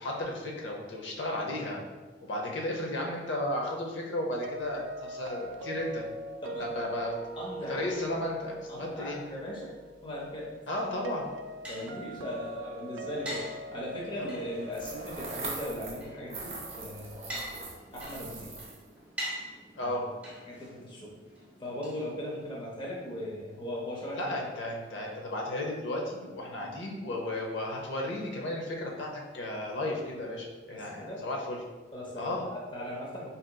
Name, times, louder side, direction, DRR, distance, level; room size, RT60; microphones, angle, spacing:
voice 1, 0.0-1.8 2.2-6.1 6.6-7.1 7.7-9.2 10.7-11.3 19.8-20.0 24.1-31.6 32.2-32.4, left 1 dB, 75° left, -1 dB, 0.6 m, -34 dB
sound 1, 4.4-17.3, right 1 dB, 90° right, 0.3 m, -43 dB
voice 2, 6.4-6.8 7.4-7.8 8.7-9.7 10.0-10.6 11.7-17.4 17.9-18.5 19.8-20.0 20.4-21.1 21.6-24.3 26.6-26.8 30.7-31.2 31.9-33.3, equal, 25° left, -3 dB, 0.7 m, -39 dB
sound 2, 11.0-22.7, right 1 dB, 5° right, 0.9 m, -45 dB
sound 3, 14.7-16.0 16.3-18.9, right 3 dB, 35° right, 0.6 m, -41 dB
4.9 x 2.8 x 2.2 m, 1.3 s
head